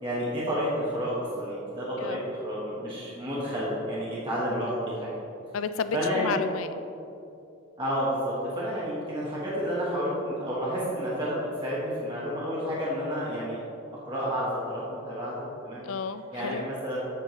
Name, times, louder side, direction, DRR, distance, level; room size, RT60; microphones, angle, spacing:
voice 1, 0.0-5.1 5.9-6.3 7.8-13.6 14.0-15.8 16.3-17.0, equal, 25° right, -7 dB, 1.2 m, -30 dB
voice 2, 5.5-6.8 15.8-16.7, left 5 dB, 70° left, 11 dB, 0.4 m, -32 dB
7.6 x 7.3 x 3.1 m, 2.7 s
head